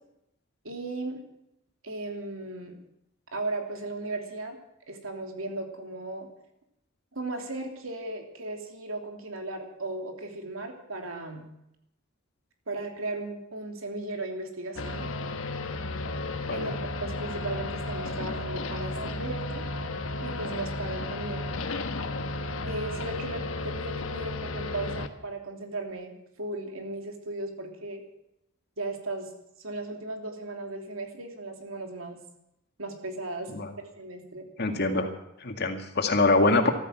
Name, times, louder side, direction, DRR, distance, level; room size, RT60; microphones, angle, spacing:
voice 1, 0.6-1.2 1.8-2.8 3.3-4.6 4.9-6.3 7.1-11.4 12.7-15.1 16.5-16.7 17.0-19.6 20.2-21.5 22.6-28.0 28.8-29.3 29.6-32.2 32.8-33.6 34.0-34.5, right 2 dB, 85° right, 3 dB, 3.0 m, -36 dB
sound 1, 14.8-25.1, left 2 dB, 75° left, 1.3 m, -33 dB
voice 2, 34.6-35.1 35.4-36.7, left 2 dB, 55° left, 5 dB, 2.1 m, -24 dB
14.5 x 13.5 x 7.5 m, 0.83 s
head